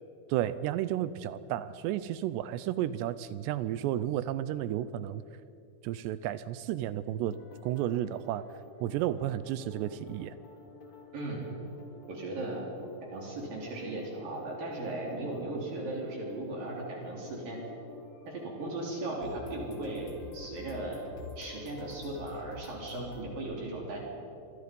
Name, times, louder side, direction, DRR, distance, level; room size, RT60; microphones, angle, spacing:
voice 1, 0.3-5.2 5.8-7.4 7.6-8.5 8.8-10.3, right 12 dB, 80° right, 15 dB, 2.5 m, -32 dB
sound 1, 7.3-23.2, left 3 dB, 40° left, 2.5 m, -50 dB
voice 2, 11.1-11.5 12.1-12.6 13.1-17.6 18.3-21.0 21.4-24.0, right 2 dB, 50° right, -2 dB, 4.9 m, -37 dB
27.0 x 23.5 x 5.4 m, 2.7 s
omnidirectional pair, 5.4 m